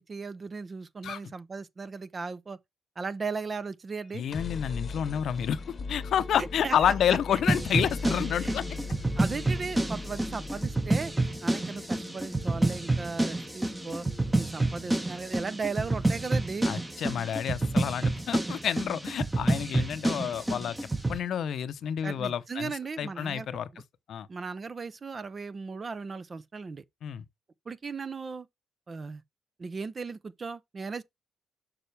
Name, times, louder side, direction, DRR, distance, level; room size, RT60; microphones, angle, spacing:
voice 1, 0.0-2.6 3.0-4.2 6.4-6.8 7.1-7.4 8.4-8.5 9.2-11.1 11.4-14.1 14.4-16.7 19.7-19.9 22.0-23.5 23.7-23.8 24.3-26.8 27.7-28.5 28.9-29.2 29.6-31.0, right 4 dB, 35° right, 0.6 m, -37 dB
sound 1, 4.0-17.9, left 4 dB, 40° left, 0.9 m, -41 dB
voice 2, 4.1-5.6 5.9-8.7 16.7-20.8 21.1-22.7 23.0-23.7 24.1-24.3 27.0-27.2, left 9 dB, 65° left, 0.7 m, -29 dB
sound 2, 7.5-21.2, right 2 dB, 15° right, 1.0 m, -29 dB
6.9 x 5.6 x 3.3 m
cardioid pair, 90°, 0 cm